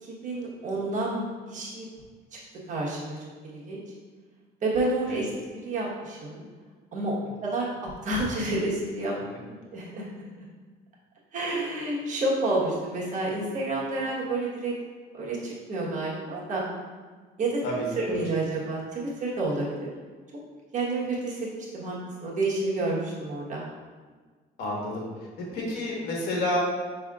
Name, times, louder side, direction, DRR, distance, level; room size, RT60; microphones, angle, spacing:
voice 1, 0.0-1.8 2.3-2.4 2.7-3.2 3.4-3.8 4.6-6.4 6.9-7.1 7.4-9.1 9.7-10.1 11.3-14.7 15.1-16.6 17.4-17.6 17.9-19.9 20.7-22.0 22.2-23.6, right 2 dB, 50° right, -5 dB, 1.3 m, -29 dB
voice 2, 17.6-18.2 24.6-25.0 25.4-26.6, left 1 dB, 70° left, -3 dB, 1.3 m, -30 dB
5.6 x 3.4 x 2.4 m, 1.5 s
cardioid pair, 110°, 17 cm